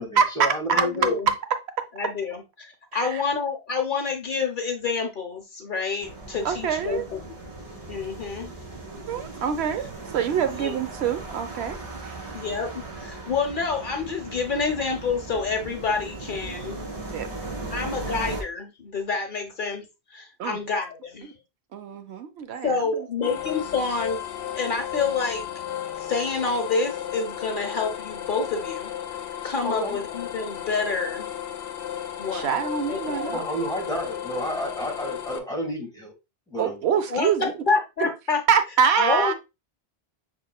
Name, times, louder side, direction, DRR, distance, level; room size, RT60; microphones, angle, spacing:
voice 1, 0.0-1.2 29.6-30.0 33.3-36.1 36.5-36.9, equal, 5° left, 1.7 m, -31 dB
voice 2, 0.7-1.3 1.9-7.5 7.9-8.5 10.5-10.7 12.3-16.9 17.7-19.9 20.1-21.3 22.6-24.2 24.6-25.4 26.0-28.9 29.4-31.3 32.2-32.5 32.9-33.4 37.1-38.4 39.0-39.3, left 4 dB, 55° left, 1.0 m, -28 dB
sound 1, 6.0-18.4, right 2 dB, 35° right, 1.9 m, -38 dB
voice 3, 6.4-7.0 8.9-11.8 12.1-12.2 17.1-17.3 17.6-17.7 20.4-20.6 21.7-22.7 23.2-23.3 32.3-33.4 36.6-37.5 38.0-38.1 38.5-39.3, right 7 dB, 90° right, 0.9 m, -25 dB
sound 2, 23.2-35.4, left 10 dB, 85° left, 0.9 m, -34 dB
6.1 x 3.6 x 2.3 m
omnidirectional pair, 1.1 m